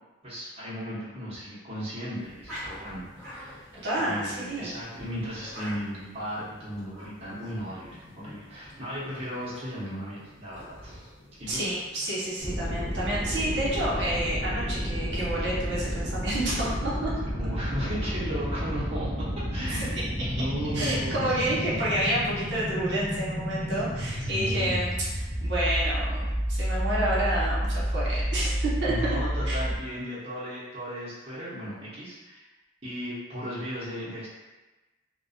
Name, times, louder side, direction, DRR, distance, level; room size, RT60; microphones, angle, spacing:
voice 1, 0.2-3.6 3.9-11.1 11.4-11.7 17.4-19.8 20.2-21.8 24.2-24.8 28.8-32.4 32.8-34.3, equal, 30° right, -10 dB, 0.6 m, -36 dB
sound 1, 2.1-13.9, equal, 5° left, 1.1 m, -47 dB
voice 2, 3.8-4.7 11.5-17.1 19.7-20.0 20.7-26.2 26.5-28.9 29.5-29.6, right 1 dB, 70° right, -7 dB, 0.7 m, -29 dB
sound 2, 12.4-29.8, equal, 35° left, 1.4 m, -30 dB
2.4 x 2.2 x 2.5 m, 1.1 s
head